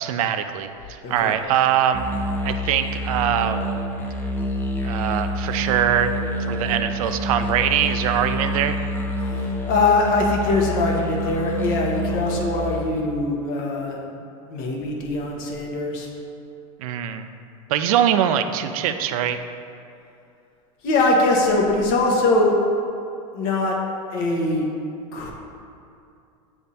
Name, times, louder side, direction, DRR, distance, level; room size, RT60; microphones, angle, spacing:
voice 1, 0.0-2.0 2.4-3.7 4.8-6.1 6.5-8.8 16.8-17.3 17.7-19.4, right 10 dB, 75° right, 9 dB, 0.5 m, -22 dB
sound 1, 1.9-13.0, equal, 10° left, 0.5 m, -27 dB
voice 2, 9.7-14.0 14.5-16.1 20.8-22.6 23.3-23.7 24.1-24.6 25.1-25.3, left 2 dB, 50° left, 0 dB, 1.1 m, -22 dB
7.5 x 3.5 x 4.1 m, 2.5 s
supercardioid pair, 125°, 18 cm